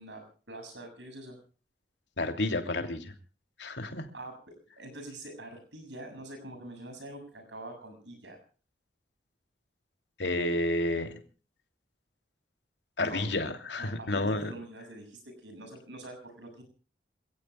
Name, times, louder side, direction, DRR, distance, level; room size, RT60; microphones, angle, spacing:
voice 1, 0.0-1.4 4.1-8.4 13.0-16.6, right 1 dB, 85° right, 7 dB, 7.0 m, -45 dB
voice 2, 2.2-3.0 3.6-4.1 10.2-11.1 13.0-14.5, left 2 dB, 80° left, 6 dB, 2.9 m, -30 dB
27.0 x 17.5 x 2.3 m, 0.38 s
head